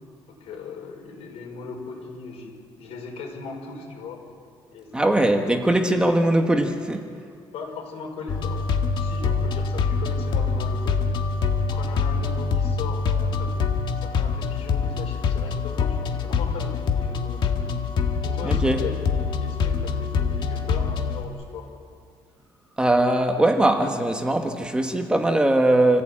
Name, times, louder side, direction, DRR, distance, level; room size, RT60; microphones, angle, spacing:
voice 1, 0.3-4.2 4.7-5.2 7.5-8.7 9.0-11.1 11.7-13.6 14.0-17.7 18.2-21.7, left 5 dB, 80° left, 5.8 m, -38 dB
voice 2, 4.9-7.1 18.4-18.8 22.8-26.0, right 1 dB, 10° right, 1.3 m, -21 dB
sound 1, 8.3-21.2, left 5 dB, 50° left, 1.8 m, -25 dB
28.0 x 15.5 x 8.6 m
cardioid pair, 165°, 10 cm